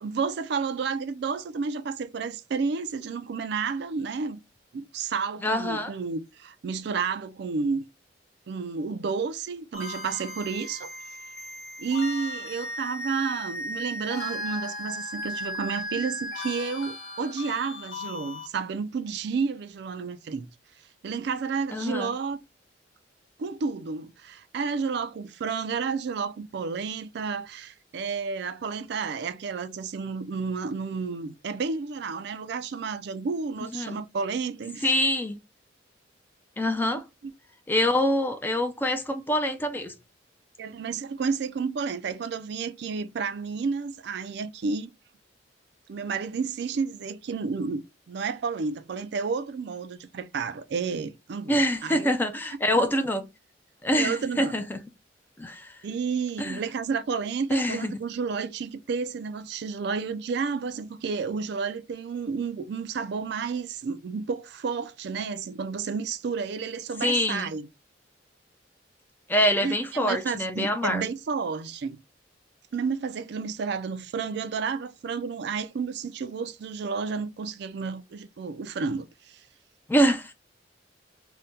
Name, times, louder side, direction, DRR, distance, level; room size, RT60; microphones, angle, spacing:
voice 1, 0.0-4.4 4.7-7.8 8.5-10.9 11.8-20.5 21.0-22.4 23.4-34.9 40.6-44.9 45.9-52.1 53.9-54.6 55.8-67.7 69.6-72.0 72.7-79.4, right 5 dB, 60° right, 0.4 m, -31 dB
voice 2, 5.4-5.9 21.7-22.1 33.6-34.0 34.8-35.4 36.6-37.0 37.7-39.9 51.5-53.3 53.8-54.8 55.4-55.7 56.4-56.6 57.5-57.9 67.0-67.5 69.3-71.0 79.9-80.3, equal, 10° left, 0.3 m, -25 dB
sound 1, 9.7-18.5, left 1 dB, 75° left, 0.8 m, -36 dB
2.7 x 2.1 x 3.5 m
head